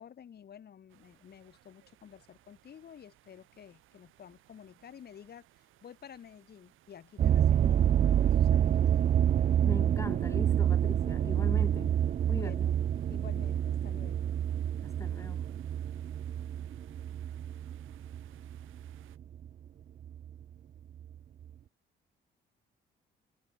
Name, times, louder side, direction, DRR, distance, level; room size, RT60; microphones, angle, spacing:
voice 1, 0.0-8.8 12.2-12.7 13.1-14.3, left 8 dB, 55° left, 1.8 m, -51 dB
sound 1, 0.9-19.2, right 15 dB, 85° right, 4.1 m, -64 dB
sound 2, 7.2-19.5 20.0-20.4 21.0-21.1 21.4-21.5, right 10 dB, 40° right, 0.4 m, -28 dB
voice 2, 9.6-12.8 14.8-15.4, left 2 dB, 15° left, 2.8 m, -41 dB
cardioid pair, 90°, 20 cm